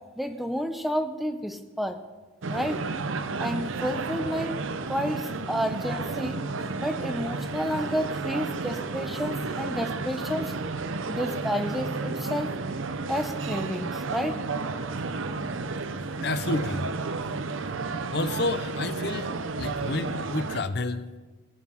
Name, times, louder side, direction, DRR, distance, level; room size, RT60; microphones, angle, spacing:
voice 1, 0.2-2.0 2.5-2.8 3.4-4.6 4.9-6.4 6.8-10.5 11.1-12.5 13.1-14.4, equal, ahead, 8 dB, 0.6 m, -30 dB
sound 1, 2.4-20.6, right 3 dB, 85° right, 0.7 m, -32 dB
voice 2, 16.2-16.9 18.1-21.2, left 3 dB, 55° left, 12 dB, 0.6 m, -30 dB
17.0 x 9.5 x 5.5 m, 1.3 s
head